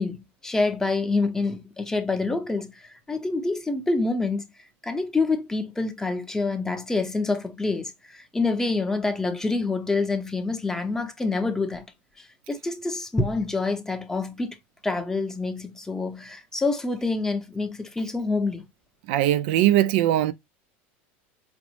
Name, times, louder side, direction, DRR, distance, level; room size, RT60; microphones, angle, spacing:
voice 1, 0.0-4.4 4.8-11.9 12.2-14.6 14.8-18.6, left 3 dB, 10° left, 0.6 m, -27 dB
voice 2, 19.1-20.3, right 13 dB, 65° right, 0.3 m, -20 dB
5.0 x 2.0 x 3.0 m
supercardioid pair, 135°, 6 cm